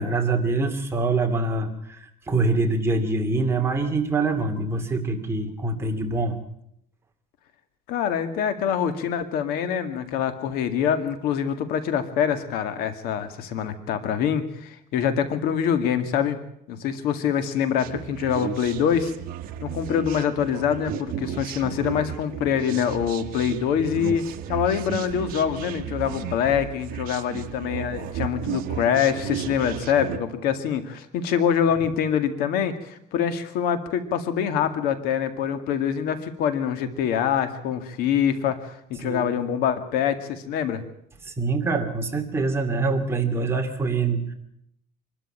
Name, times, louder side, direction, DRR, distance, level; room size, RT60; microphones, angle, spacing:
voice 1, 0.0-6.4 39.0-39.3 41.3-44.3, right 3 dB, 15° right, 3 dB, 2.4 m, -25 dB
voice 2, 7.9-16.4 16.7-19.1 19.6-40.8, left 8 dB, 75° left, 9 dB, 2.1 m, -25 dB
sound 1, 17.8-30.2, right 10 dB, 65° right, 1.3 m, -34 dB
24.5 x 13.0 x 8.9 m, 0.75 s
cardioid pair, 150°, 16 cm